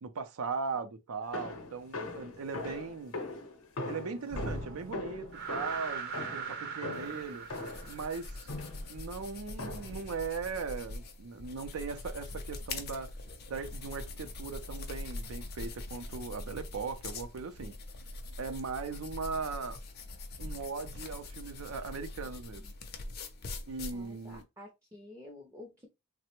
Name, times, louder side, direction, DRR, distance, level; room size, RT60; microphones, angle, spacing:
voice 1, 0.0-3.1 3.9-7.5 7.9-8.5 8.9-13.1 13.5-17.7 18.4-19.8 20.4-22.6 23.7-24.4, right 5 dB, 85° right, 0.5 m, -39 dB
sound 1, 1.3-8.0 8.5-8.9 9.6-10.1, left 2 dB, 80° left, 0.7 m, -41 dB
sound 2, 4.3-8.7, right 4 dB, 50° right, 0.7 m, -40 dB
sound 3, 6.9-24.4, left 2 dB, 45° left, 0.5 m, -43 dB
voice 2, 23.9-25.9, left 1 dB, 10° right, 0.4 m, -50 dB
3.2 x 2.0 x 2.9 m
head